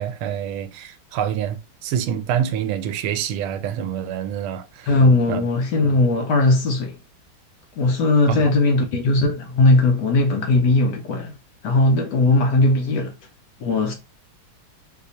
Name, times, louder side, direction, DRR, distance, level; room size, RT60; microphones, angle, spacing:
voice 1, 0.0-5.0 5.3-5.4 8.3-8.5, right 9 dB, 90° right, 1.5 m, -26 dB
voice 2, 4.9-6.9 7.8-11.3 11.6-13.1 13.6-13.9, left 2 dB, 70° left, 1.1 m, -18 dB
4.2 x 2.7 x 2.7 m
omnidirectional pair, 2.3 m